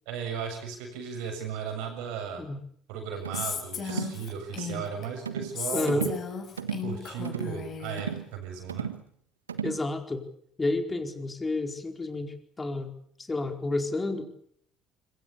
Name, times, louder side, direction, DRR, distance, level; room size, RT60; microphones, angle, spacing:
voice 1, 0.1-2.4 2.9-6.1 6.8-8.9, right 7 dB, 65° right, 6 dB, 7.3 m, -36 dB
sound 1, 3.2-3.5 3.9-4.2 4.6-4.8 5.3-5.6 5.9-6.2 6.6-6.9 7.2-7.6 8.0-8.3 8.7-9.0 9.5-9.8, right 7 dB, 80° right, 1.4 m, -34 dB
Female speech woman speaking, 3.3-5.1 5.6-8.0, left 7 dB, 45° left, 6.6 m, -35 dB
voice 2, 5.7-6.1 9.6-10.2 10.6-12.9 13.2-14.2, left 2 dB, 20° left, 6 dB, 4.6 m, -30 dB
26.0 x 24.0 x 7.0 m, 0.65 s
figure-of-eight pair, 55°, 0 cm